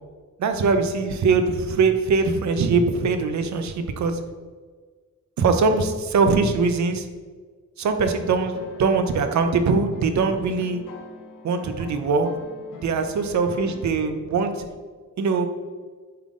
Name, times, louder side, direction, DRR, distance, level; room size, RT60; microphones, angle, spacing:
voice 1, 0.4-4.2 5.4-7.1 7.8-10.8 11.4-12.3 12.8-14.7 15.2-15.5, right 4 dB, 65° right, 7 dB, 0.6 m, -22 dB
sound 1, 7.8-14.1, left 4 dB, 80° left, 0.7 m, -45 dB
7.6 x 3.8 x 3.6 m, 1.5 s
wide cardioid pair, 180°, 31 cm